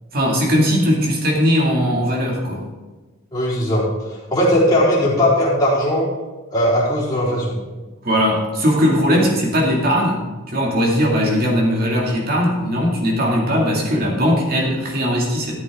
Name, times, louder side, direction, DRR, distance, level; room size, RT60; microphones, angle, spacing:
voice 1, 0.1-2.7 8.0-15.5, equal, 45° right, -1 dB, 2.4 m, -19 dB
voice 2, 3.3-3.8 4.3-6.1 6.5-7.6, equal, 20° left, -8 dB, 3.9 m, -18 dB
13.5 x 8.1 x 3.7 m, 1.2 s
head